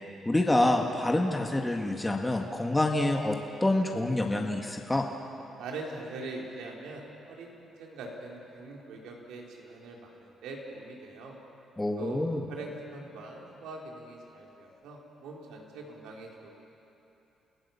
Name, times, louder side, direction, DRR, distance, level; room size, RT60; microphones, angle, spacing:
voice 1, 0.3-5.1 11.8-12.4, left 1 dB, 15° left, 1 dB, 1.8 m, -27 dB
voice 2, 5.6-11.4 12.0-16.5, right 2 dB, 90° right, -1 dB, 3.9 m, -43 dB
29.5 x 16.5 x 7.2 m, 2.9 s
cardioid pair, 90°, 0 cm